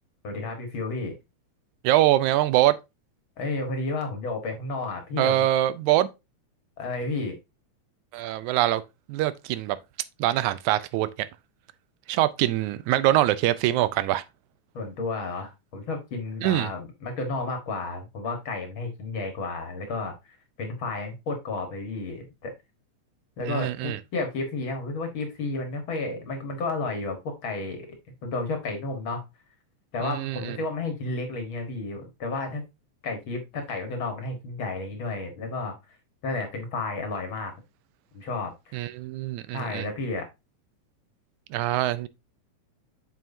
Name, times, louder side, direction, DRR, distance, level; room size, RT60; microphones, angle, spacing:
voice 1, 0.2-1.1 3.4-5.5 6.8-7.4 14.7-20.2 20.6-22.5 23.4-27.9 28.2-29.2 29.9-32.6 33.0-35.7 36.2-37.5 38.1-38.5 39.5-40.2, left 3 dB, 50° left, 1.8 m, -32 dB
voice 2, 1.8-2.7 5.2-6.1 8.1-8.8 9.1-9.8 10.2-11.1 12.1-14.2 16.4-16.7 23.4-24.0 30.0-30.6 38.7-39.9 41.5-42.1, right 14 dB, 85° right, 2.0 m, -23 dB
7.5 x 5.6 x 2.6 m
omnidirectional pair, 3.4 m